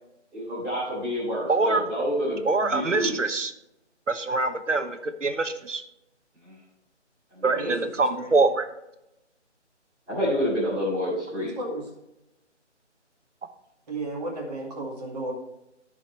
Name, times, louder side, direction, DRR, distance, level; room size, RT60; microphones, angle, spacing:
voice 1, 0.3-3.2 6.4-6.5 7.3-7.8 10.1-11.6, equal, 10° right, -10 dB, 3.8 m, -28 dB
voice 2, 1.5-1.8 2.4-3.5 4.1-5.8 7.4-8.7, right 3 dB, 85° right, 10 dB, 1.1 m, -24 dB
voice 3, 13.9-15.3, right 2 dB, 35° right, -2 dB, 2.4 m, -33 dB
15.0 x 5.1 x 3.2 m, 0.87 s
figure-of-eight pair, 160°, 36 cm